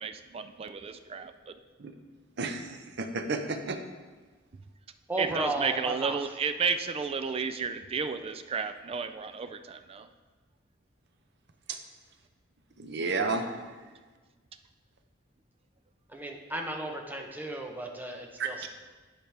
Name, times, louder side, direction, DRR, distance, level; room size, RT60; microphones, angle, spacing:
voice 1, 0.0-1.5 5.2-10.1, right 5 dB, 30° right, 9 dB, 0.3 m, -32 dB
voice 2, 2.4-3.8 11.7-11.8 12.8-13.5 18.4-18.7, right 3 dB, 60° right, 6 dB, 0.7 m, -32 dB
voice 3, 5.1-6.2 16.1-18.7, right 1 dB, 10° right, 2 dB, 0.8 m, -34 dB
10.5 x 5.0 x 3.3 m, 1.4 s
head